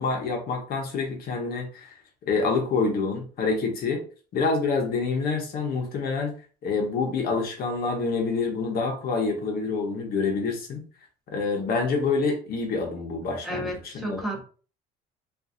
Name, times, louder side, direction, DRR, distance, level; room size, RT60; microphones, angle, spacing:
voice 1, 0.0-2.0 2.2-4.0 4.3-6.3 6.6-10.8 11.3-14.4, left 4 dB, 65° left, 2 dB, 1.1 m, -27 dB
voice 2, 13.4-14.4, right 1 dB, ahead, -1 dB, 1.2 m, -32 dB
3.8 x 2.6 x 2.6 m, 0.39 s
cardioid pair, 110°, 17 cm